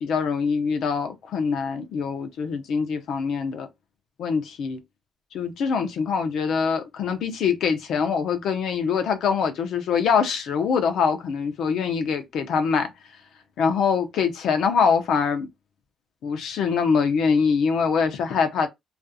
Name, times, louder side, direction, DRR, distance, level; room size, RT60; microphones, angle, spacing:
voice 1, 0.0-3.7 4.2-4.8 5.3-12.9 13.6-15.5 16.2-18.7, left 6 dB, 75° left, 0.6 m, -24 dB
2.4 x 2.4 x 2.6 m
cardioid pair, 90°, 0 cm